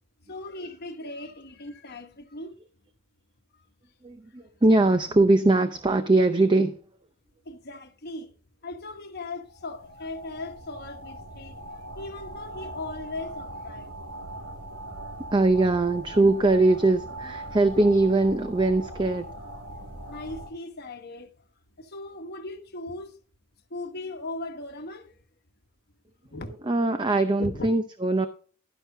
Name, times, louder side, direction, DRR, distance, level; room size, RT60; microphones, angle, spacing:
voice 1, 0.2-2.5 7.4-8.3 8.6-11.6 11.9-13.9 20.1-21.4 21.8-23.2 23.7-25.2 26.2-26.6 27.4-27.7, left 2 dB, 45° left, 1.2 m, -38 dB
voice 2, 4.0-6.8 15.3-19.3 26.6-28.3, right 2 dB, 20° right, 0.6 m, -21 dB
sound 1, 9.4-20.5, right 1 dB, 80° right, 2.3 m, -40 dB
12.0 x 10.5 x 2.7 m
head